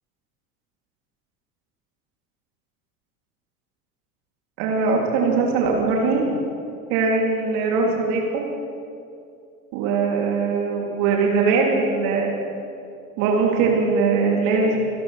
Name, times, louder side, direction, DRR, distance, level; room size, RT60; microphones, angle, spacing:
voice 1, 4.6-6.4 6.9-8.5 9.7-12.3 13.2-14.8, right 4 dB, 50° right, 0 dB, 2.6 m, -21 dB
27.0 x 12.0 x 3.2 m, 2.5 s
figure-of-eight pair, 75°, 43 cm